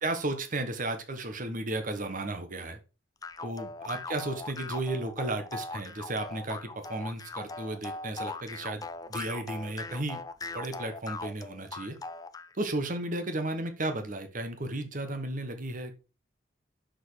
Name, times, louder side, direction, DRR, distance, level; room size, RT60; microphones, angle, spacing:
voice 1, 0.0-2.8 3.4-10.2 10.5-12.0 12.5-15.9, right 2 dB, 45° right, 7 dB, 1.2 m, -34 dB
sound 1, 3.2-12.5, left 3 dB, 20° left, 0.5 m, -40 dB
6.4 x 5.1 x 4.8 m, 0.31 s
head